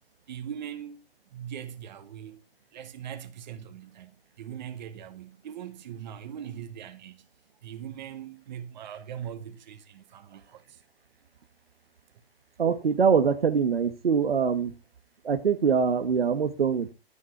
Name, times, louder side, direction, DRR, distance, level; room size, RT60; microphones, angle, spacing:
voice 1, 0.3-1.0 1.3-2.4 2.7-7.3 7.6-10.8, right 9 dB, 45° right, 2.0 m, -41 dB
voice 2, 12.6-14.7 15.2-16.9, right 6 dB, 75° right, 1.5 m, -23 dB
13.0 x 9.5 x 4.6 m
figure-of-eight pair, 130°, 30 cm